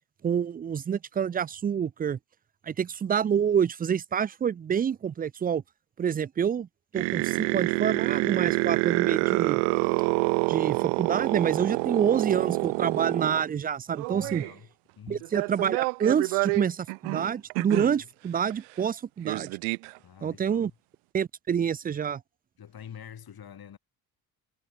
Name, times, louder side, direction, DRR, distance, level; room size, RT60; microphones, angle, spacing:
voice 1, 0.2-2.2 2.6-5.6 6.0-6.7 6.9-9.6 10.5-14.4 15.1-19.5 20.2-20.7 21.1-22.2, right 8 dB, 20° right, 0.4 m, -27 dB
sound 1, 6.9-13.4 13.9-14.5 15.2-18.0 18.5-18.6 18.8-18.9 19.3-19.9, right 40 dB or more, 75° right, 0.6 m, -27 dB
voice 2, 14.1-14.7 15.0-15.3 20.0-20.7 22.6-23.8, left 8 dB, 45° left, 3.9 m, -46 dB
hypercardioid pair, 60°, 49 cm